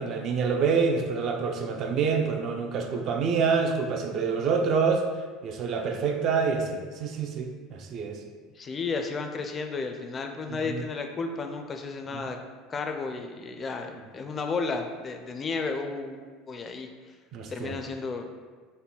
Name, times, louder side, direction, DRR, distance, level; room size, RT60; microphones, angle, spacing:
voice 1, 0.0-5.1 5.4-8.2 10.5-10.8 12.1-12.2 17.3-17.8, right 5 dB, 45° right, 4 dB, 0.4 m, -27 dB
voice 2, 8.6-12.4 12.7-16.9 17.5-18.3, left 4 dB, 25° left, 5 dB, 0.4 m, -33 dB
4.0 x 2.1 x 3.7 m, 1.5 s
supercardioid pair, 125°, 0 cm